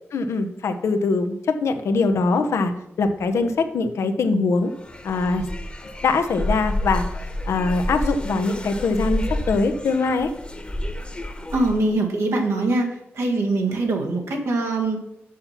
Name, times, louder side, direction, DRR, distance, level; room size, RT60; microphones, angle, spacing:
voice 1, 0.1-2.7 3.0-4.7 5.0-5.4 6.0-7.0 7.5-10.3, left 3 dB, 80° left, 8 dB, 0.8 m, -22 dB
sound 1, 4.7-11.9, left 1 dB, 20° left, 1.2 m, -29 dB
voice 2, 11.5-15.0, right 2 dB, 80° right, 1 dB, 1.8 m, -23 dB
7.4 x 5.8 x 5.9 m, 0.81 s
cardioid pair, 55°, 5 cm